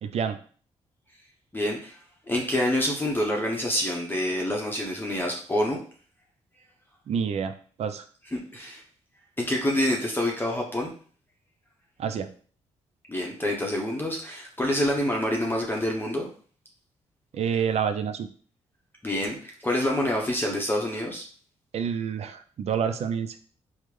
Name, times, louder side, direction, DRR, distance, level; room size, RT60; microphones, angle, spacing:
voice 1, 0.0-0.4 7.1-8.1 12.0-12.3 17.3-18.3 21.7-23.4, right 7 dB, 60° right, 9 dB, 0.4 m, -28 dB
voice 2, 1.5-2.0 2.3-5.8 8.3-8.8 9.4-10.9 13.1-16.3 19.0-21.2, left 1 dB, 15° left, -1 dB, 0.7 m, -27 dB
3.4 x 2.0 x 3.1 m, 0.43 s
cardioid pair, 70°, 13 cm